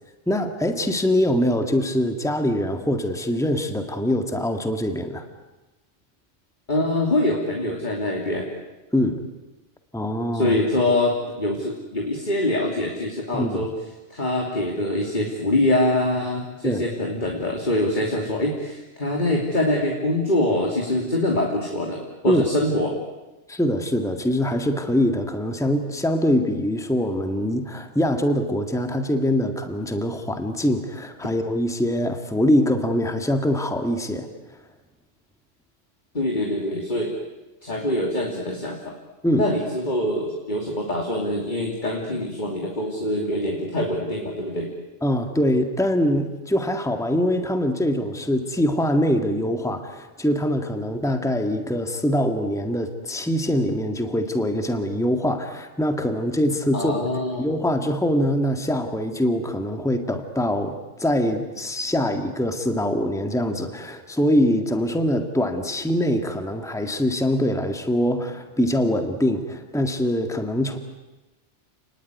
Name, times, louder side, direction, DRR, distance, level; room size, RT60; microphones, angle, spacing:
voice 1, 0.3-5.3 8.9-9.2 9.9-10.5 13.3-13.7 16.6-16.9 22.2-22.4 23.5-34.3 39.2-39.5 45.0-56.9 57.4-70.8, equal, 5° left, 6 dB, 1.8 m, -23 dB
voice 2, 6.7-8.5 10.3-13.7 14.1-22.9 36.1-37.1 37.6-39.0 39.3-44.7 56.7-57.4, left 1 dB, 40° left, 0 dB, 3.1 m, -24 dB
29.5 x 20.5 x 9.5 m, 1.1 s
omnidirectional pair, 1.2 m